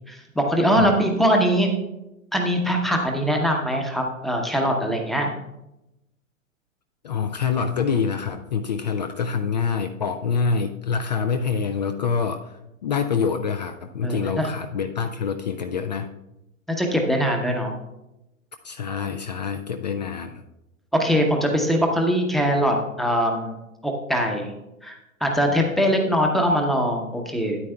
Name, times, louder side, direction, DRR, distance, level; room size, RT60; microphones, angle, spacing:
voice 1, 0.1-1.7 2.3-5.3 14.0-14.5 16.7-17.7 20.9-23.6 23.8-24.5 24.8-27.6, equal, ahead, 2 dB, 0.8 m, -22 dB
voice 2, 7.0-16.1 18.6-20.4, left 6 dB, 35° left, 8 dB, 0.4 m, -26 dB
12.5 x 9.2 x 2.3 m, 0.92 s
figure-of-eight pair, 110°, 41 cm